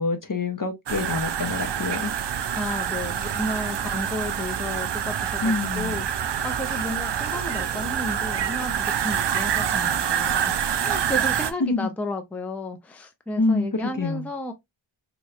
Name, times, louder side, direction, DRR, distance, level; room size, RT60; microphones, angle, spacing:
voice 1, 0.0-2.1 5.4-6.0 11.6-11.9 13.4-14.3, left 3 dB, 45° left, 0.7 m, -26 dB
sound 1, 0.9-11.5, right 9 dB, 65° right, 0.5 m, -26 dB
voice 2, 2.5-14.5, left 1 dB, 5° left, 0.5 m, -33 dB
3.2 x 3.0 x 2.3 m
wide cardioid pair, 70°, 47 cm